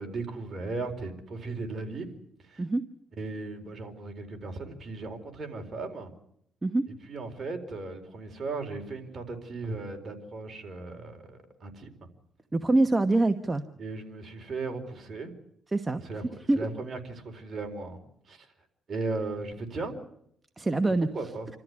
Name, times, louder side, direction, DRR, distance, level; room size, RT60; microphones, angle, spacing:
voice 1, 0.0-2.1 2.4-2.6 3.2-6.1 7.1-12.1 13.8-15.3 16.0-16.2 16.5-18.5 18.9-19.9 21.1-21.5, right 3 dB, 40° right, 5 dB, 4.3 m, -36 dB
voice 2, 12.5-13.6 15.7-16.0 16.5-16.6 20.6-21.1, right 2 dB, 20° right, 8 dB, 1.1 m, -24 dB
28.0 x 13.5 x 9.5 m, 0.72 s
cardioid pair, 100°, 0 cm